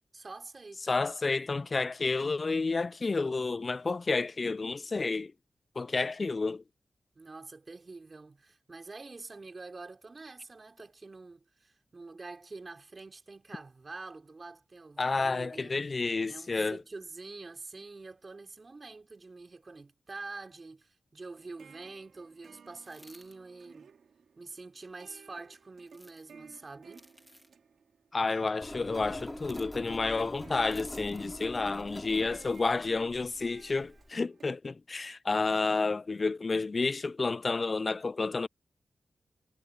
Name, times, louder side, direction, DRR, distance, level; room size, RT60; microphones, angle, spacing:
voice 1, 0.1-1.0 7.1-15.8 16.3-23.9 24.4-27.1, right 3 dB, 45° right, 4.7 m, -46 dB
voice 2, 0.9-5.3 5.8-6.6 15.0-16.8 28.1-38.5, left 3 dB, 50° left, 0.3 m, -30 dB
sound 1, 21.3-34.5, right 6 dB, 85° right, 2.3 m, -57 dB
sound 2, 22.8-23.4 25.8-26.3 26.9-27.5 29.4-29.8 30.7-31.3 32.4-32.8, equal, 5° left, 2.3 m, -57 dB
Engine, 28.6-34.1, left 1 dB, 20° left, 3.3 m, -43 dB
cardioid pair, 45°, 0 cm